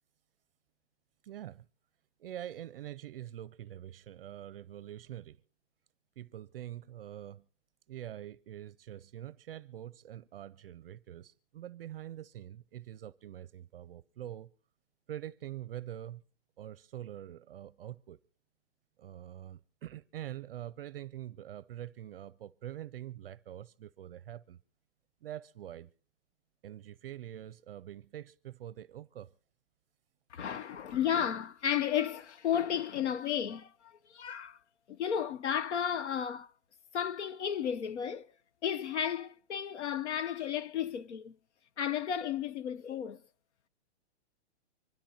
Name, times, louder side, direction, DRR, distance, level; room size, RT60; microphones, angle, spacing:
voice 1, 1.2-1.7 2.2-5.4 6.2-7.4 7.9-14.5 15.1-16.2 16.6-18.2 19.0-24.6 25.2-25.9 26.6-29.3, right 12 dB, 55° right, 0.5 m, -45 dB
voice 2, 30.3-34.6 34.9-36.5 36.9-38.3 38.6-41.4 41.8-43.2, left 9 dB, 75° left, 0.8 m, -33 dB
25.0 x 13.0 x 2.8 m
hypercardioid pair, 160°, 35 cm